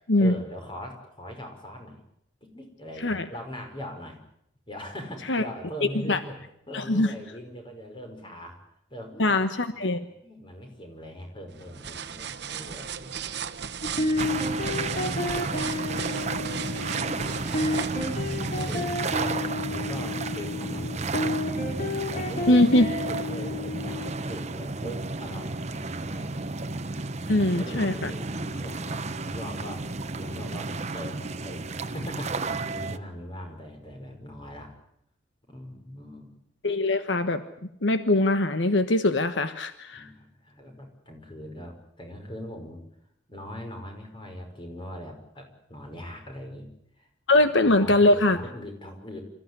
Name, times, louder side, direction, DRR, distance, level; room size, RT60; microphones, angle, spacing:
voice 1, 0.2-2.0 2.4-4.2 4.7-6.4 6.7-8.6 8.9-9.4 9.7-13.3 15.3-16.1 16.6-19.4 19.7-21.4 21.7-22.6 23.1-26.6 27.6-29.9 30.2-34.7 35.5-36.3 39.9-42.8 43.3-46.7 47.0-47.1 47.3-49.2, equal, 30° left, 4 dB, 5.6 m, -41 dB
voice 2, 6.7-7.1 9.2-10.0 22.5-22.9 27.3-28.1 36.6-37.4 37.8-40.1 47.3-48.4, left 2 dB, 80° left, 9 dB, 1.3 m, -22 dB
sound 1, 11.5-19.3, right 7 dB, 65° right, 1.1 m, -37 dB
sound 2, 13.8-24.1, left 2 dB, 50° left, 4.8 m, -31 dB
sound 3, 14.2-33.0, right 3 dB, 40° right, 1.0 m, -32 dB
27.5 x 15.0 x 9.8 m, 0.76 s
head